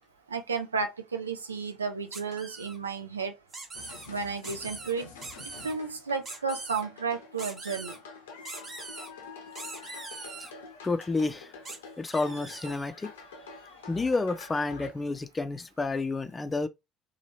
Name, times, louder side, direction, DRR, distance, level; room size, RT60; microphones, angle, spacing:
voice 1, 0.3-3.4 4.1-5.1 5.6-8.0, right 5 dB, 85° right, 0.4 m, -32 dB
sound 1, 2.1-2.8 3.5-4.1 4.4-4.9 5.2-5.7 6.2-6.8 7.4-8.0 8.4-9.1 9.5-10.5 11.6-11.8 12.1-12.9, right 3 dB, 35° right, 1.0 m, -42 dB
sound 2, 3.7-14.9, left 4 dB, 75° left, 0.6 m, -47 dB
voice 2, 10.8-11.5 12.0-13.1 13.9-16.7, left 3 dB, 25° left, 0.5 m, -30 dB
2.9 x 2.3 x 2.9 m
figure-of-eight pair, 55°, 0 cm